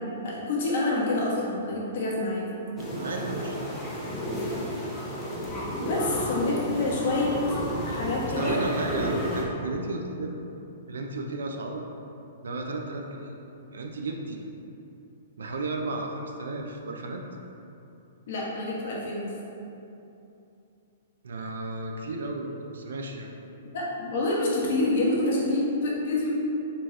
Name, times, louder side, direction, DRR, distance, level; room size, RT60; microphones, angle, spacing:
voice 1, 0.2-2.5 5.8-7.3 7.8-8.6 18.3-19.3 23.6-26.3, left 2 dB, 65° left, -5 dB, 1.1 m, -27 dB
sound 1, 2.8-9.4, equal, 15° left, 0.7 m, -32 dB
voice 2, 2.9-3.6 8.3-10.3 10.9-11.9 12.4-13.3 13.7-14.4 15.4-17.2 21.2-23.3, right 2 dB, 85° right, 2 dB, 0.5 m, -33 dB
4.3 x 2.9 x 3.2 m, 2.8 s
hypercardioid pair, 140°, 0 cm